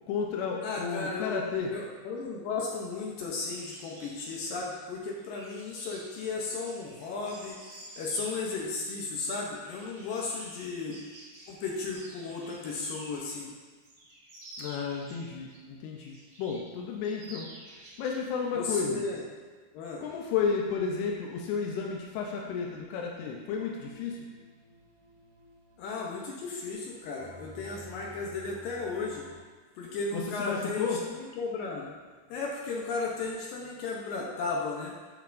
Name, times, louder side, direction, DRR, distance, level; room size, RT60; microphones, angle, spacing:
voice 1, 0.1-1.7 14.6-17.5 18.0-19.0 20.0-24.3 30.1-31.0, left 6 dB, 90° left, 0 dB, 2.7 m, -32 dB
voice 2, 0.6-1.3 1.7-7.7 8.0-11.0 11.5-13.5 18.6-19.2 19.7-20.0 25.8-29.3 29.8-31.9 32.3-34.9, left 3 dB, 75° left, -2 dB, 2.2 m, -35 dB
sound 1, 3.5-13.3 13.7-15.6 16.0-16.7 17.0-18.2 18.5-18.8, right 1 dB, 80° right, 1.0 m, -51 dB
sound 2, 23.5-29.4, right 1 dB, 65° right, 1.3 m, -52 dB
8.0 x 7.1 x 2.6 m, 1.4 s
omnidirectional pair, 4.5 m